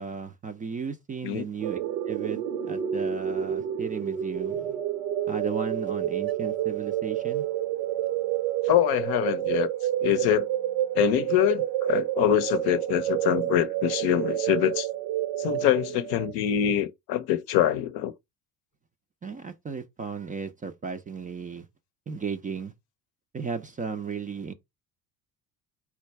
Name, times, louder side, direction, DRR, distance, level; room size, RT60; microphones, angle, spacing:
voice 1, 0.0-1.8 2.1-2.4 2.6-4.8 5.3-7.4 19.2-21.7 22.1-22.7 23.3-24.5, right 5 dB, 20° right, 0.4 m, -35 dB
sound 1, 1.6-16.3, right 11 dB, 65° right, 0.7 m, -29 dB
voice 2, 8.6-9.7 10.0-10.5 10.9-14.9 15.4-18.1, left 12 dB, 55° left, 0.6 m, -24 dB
4.4 x 2.3 x 4.4 m
hypercardioid pair, 60°, 46 cm